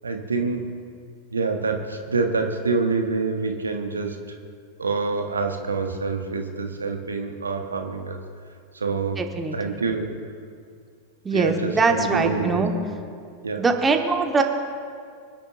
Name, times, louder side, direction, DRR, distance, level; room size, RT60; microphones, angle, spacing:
voice 1, 0.0-0.8 1.3-4.3 4.8-8.2 8.7-9.2 9.5-10.1 11.3-12.7 13.4-13.6, right 4 dB, 75° right, 4 dB, 1.2 m, -26 dB
voice 2, 9.2-9.8 11.2-12.7 13.6-14.4, right 4 dB, 15° right, 4 dB, 1.3 m, -22 dB
25.5 x 11.0 x 2.6 m, 2.2 s
figure-of-eight pair, 90°, 0 cm